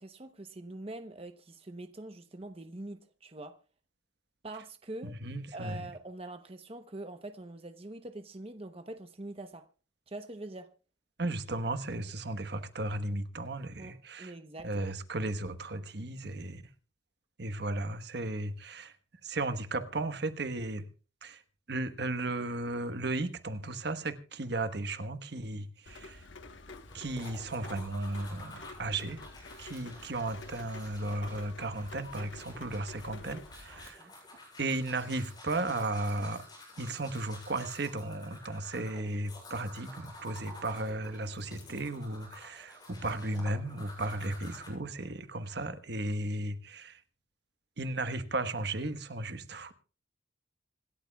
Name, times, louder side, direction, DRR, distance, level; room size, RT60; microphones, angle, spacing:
voice 1, 0.0-3.5 4.4-5.1 5.5-9.6 10.1-10.7 13.8-13.9 14.2-14.9 34.0-34.1, right 2 dB, 30° right, 0.9 m, -44 dB
voice 2, 5.0-5.8 11.2-14.3 14.6-16.6 17.4-19.0 19.2-20.8 21.2-21.4 21.7-26.3 26.9-29.2 29.6-34.1 34.6-36.4 36.8-47.0 47.8-49.7, right 2 dB, 60° right, 1.2 m, -35 dB
Rain, 25.9-33.9, left 3 dB, 75° left, 1.2 m, -49 dB
sound 1, 26.7-44.7, left 1 dB, 20° left, 7.4 m, -51 dB
26.5 x 12.5 x 2.3 m
head